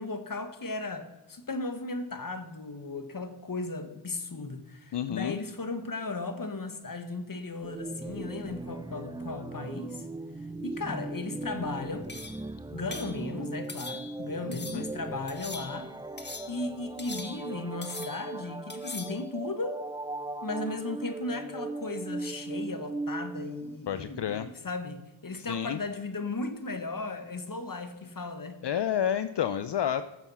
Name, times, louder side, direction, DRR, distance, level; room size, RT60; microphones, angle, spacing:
voice 1, 0.0-10.0 10.6-12.1 12.7-15.9 16.5-19.8 20.4-28.6, left 3 dB, 40° left, 9 dB, 1.5 m, -36 dB
voice 2, 4.9-5.4 14.5-14.8 23.9-24.5 25.3-25.8 28.6-30.0, left 9 dB, 55° left, 12 dB, 0.6 m, -30 dB
sound 1, 7.6-23.8, right 2 dB, 10° right, 0.5 m, -39 dB
sound 2, 12.1-12.5 12.9-13.2 13.7-14.2 14.5-14.9 15.3-15.9 16.2-16.6 17.0-17.6 17.8-18.3 18.7-19.2, left 3 dB, 20° left, 1.4 m, -42 dB
14.0 x 7.0 x 5.6 m, 1.0 s
cardioid pair, 55°, 49 cm